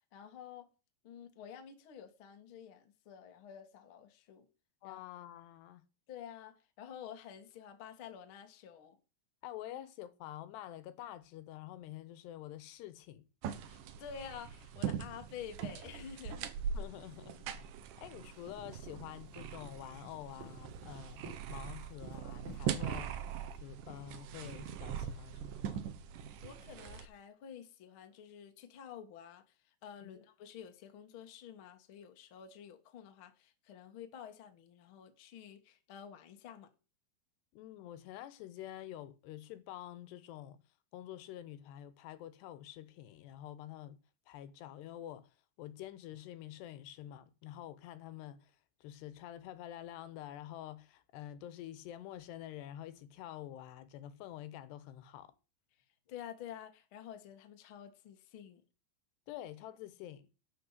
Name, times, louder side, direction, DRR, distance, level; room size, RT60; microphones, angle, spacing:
voice 1, 0.1-0.7 1.0-4.5 4.8-5.0 6.1-9.0 13.6-16.5 26.4-36.7 56.1-58.6, left 8 dB, 65° left, 1.3 m, -50 dB
voice 2, 4.8-5.8 9.4-13.2 16.7-17.6 18.0-21.2 21.5-23.3 23.6-25.9 30.0-30.2 37.5-40.6 40.9-44.0 44.3-45.3 45.6-48.5 48.8-55.3 59.3-60.3, left 12 dB, 80° left, 3.1 m, -48 dB
sound 1, 13.4-27.1, right 8 dB, 70° right, 2.1 m, -42 dB
sound 2, 18.3-23.7, equal, 45° right, 4.4 m, -54 dB
11.5 x 5.4 x 8.0 m
omnidirectional pair, 4.8 m